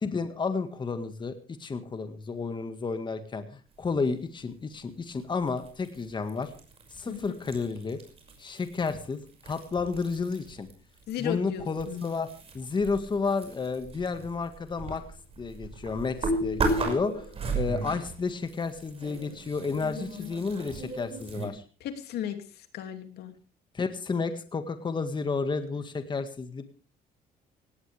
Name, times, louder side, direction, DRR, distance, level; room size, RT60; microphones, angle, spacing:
voice 1, 0.0-6.5 6.9-8.0 8.4-10.7 11.2-12.3 12.5-15.0 15.4-17.2 17.5-21.6 23.7-26.6, left 4 dB, 25° left, 8 dB, 1.8 m, -31 dB
sound 1, 5.4-10.7 11.0-21.5, right 2 dB, 35° right, 6.0 m, -36 dB
voice 2, 11.1-12.1 19.9-20.3 21.8-23.3, left 10 dB, 75° left, 7 dB, 2.7 m, -35 dB
18.0 x 17.5 x 3.5 m, 0.36 s
cardioid pair, 110°, 17 cm